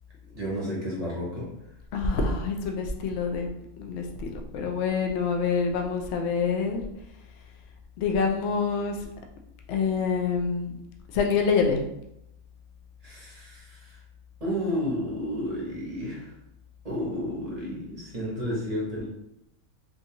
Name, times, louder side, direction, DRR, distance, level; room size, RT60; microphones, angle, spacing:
voice 1, 0.3-1.5 13.0-14.0 14.4-16.3 16.8-19.1, equal, 30° right, -5 dB, 0.8 m, -31 dB
voice 2, 1.9-3.5 3.8-6.8 8.0-9.0 9.7-10.8 11.1-11.8, left 5 dB, 65° left, 3 dB, 0.7 m, -26 dB
3.7 x 2.6 x 2.8 m, 0.83 s
omnidirectional pair, 1.6 m